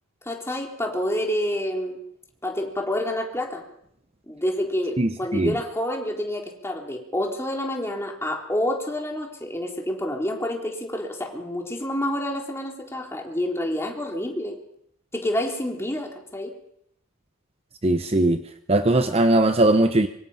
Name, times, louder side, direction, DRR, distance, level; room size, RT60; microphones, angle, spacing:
voice 1, 0.2-2.0 2.4-3.6 4.3-14.6 15.1-16.5, left 1 dB, 15° left, 1 dB, 3.7 m, -28 dB
voice 2, 5.0-5.5 17.8-18.4 18.7-20.1, right 2 dB, 30° right, 8 dB, 0.9 m, -19 dB
25.0 x 24.0 x 5.7 m, 0.72 s
head